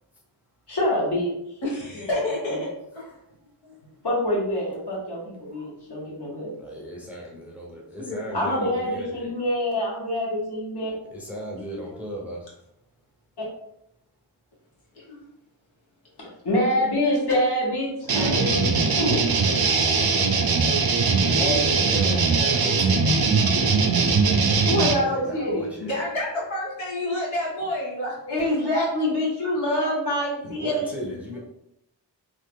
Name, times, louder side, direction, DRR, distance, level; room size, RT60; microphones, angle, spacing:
voice 1, 0.7-1.3 2.5-2.6 4.0-6.5 8.3-10.9 16.2-19.2 21.4-22.0 24.7-25.7 28.3-31.4, left 1 dB, 60° left, -5 dB, 1.5 m, -26 dB
voice 2, 1.6-3.2 3.6-3.8 5.5-5.7 6.8-6.9 7.6-8.4 11.5-11.9 14.9-15.3 25.4-25.5 25.8-28.2 29.4-29.9, left 1 dB, 75° left, -4 dB, 1.2 m, -31 dB
voice 3, 6.6-9.3 11.1-12.5 21.9-23.1 25.0-25.9 30.6-31.4, equal, 5° right, -3 dB, 0.7 m, -36 dB
sound 1, 18.1-24.9, right 4 dB, 55° right, 0.5 m, -21 dB
3.0 x 2.4 x 3.5 m, 0.79 s
wide cardioid pair, 100°, 46 cm